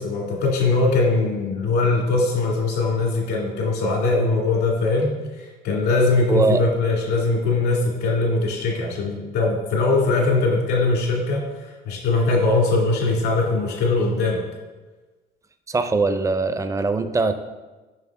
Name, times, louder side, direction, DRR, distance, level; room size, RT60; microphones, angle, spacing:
voice 1, 0.0-14.4, left 3 dB, 85° left, -2 dB, 2.2 m, -21 dB
voice 2, 6.3-6.6 15.7-17.3, right 3 dB, 20° right, 10 dB, 0.5 m, -21 dB
7.3 x 5.6 x 3.6 m, 1.2 s
cardioid pair, 110°, 17 cm